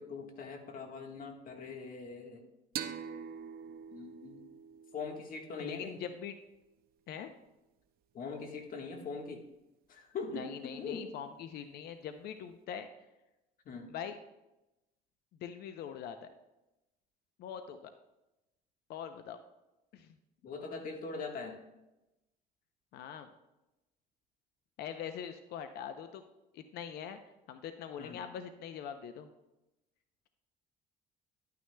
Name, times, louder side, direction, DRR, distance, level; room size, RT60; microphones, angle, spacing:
voice 1, 0.0-2.4 3.9-4.4 4.9-6.0 8.1-9.4 9.9-11.1 13.6-13.9 20.4-21.6 28.0-28.2, left 4 dB, 55° left, 4 dB, 1.4 m, -42 dB
sound 1, 2.8-6.1, right 8 dB, 60° right, 0.6 m, -44 dB
voice 2, 5.6-6.3 7.1-7.3 10.4-12.9 13.9-14.2 15.4-16.3 17.4-17.9 18.9-19.4 19.9-20.1 22.9-23.3 24.8-26.2 26.5-27.2 27.5-29.3, left 8 dB, 70° left, 9 dB, 0.6 m, -42 dB
11.0 x 9.3 x 2.2 m, 0.97 s
cardioid pair, 110°, 17 cm